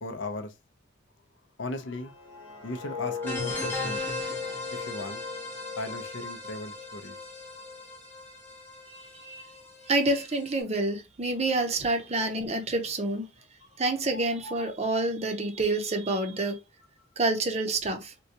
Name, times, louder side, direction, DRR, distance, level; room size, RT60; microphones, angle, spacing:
voice 1, 0.0-0.5 1.6-2.1 2.5-4.2 4.7-5.2 5.8-7.2 9.6-10.0 13.8-14.3 17.0-17.1, left 2 dB, 65° left, 0.6 m, -38 dB
sound 1, 1.9-6.9 7.3-7.6, left 4 dB, 85° left, 1.2 m, -40 dB
sound 2, 3.2-10.6, left 3 dB, 10° left, 0.9 m, -37 dB
voice 2, 8.9-9.5 9.9-13.3 13.8-16.6 17.2-18.1, right 2 dB, 30° right, 0.6 m, -28 dB
3.8 x 2.2 x 2.8 m
head